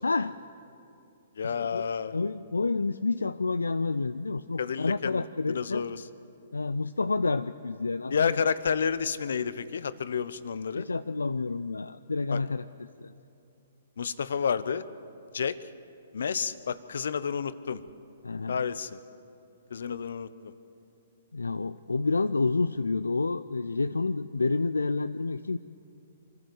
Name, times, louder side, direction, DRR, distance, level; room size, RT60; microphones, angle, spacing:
voice 1, 0.0-0.4 1.4-1.8 2.1-5.8 6.5-8.4 10.7-13.1 18.2-18.6 21.3-25.6, left 3 dB, 90° left, 12 dB, 0.4 m, -29 dB
voice 2, 1.4-2.2 4.6-5.2 5.5-6.0 8.1-10.9 12.3-12.4 14.0-14.9 15.3-15.6 16.1-17.8 18.5-19.0 19.7-20.5, left 6 dB, 70° left, 15 dB, 0.8 m, -30 dB
24.5 x 14.5 x 7.9 m, 2.6 s
hypercardioid pair, 130°, 0 cm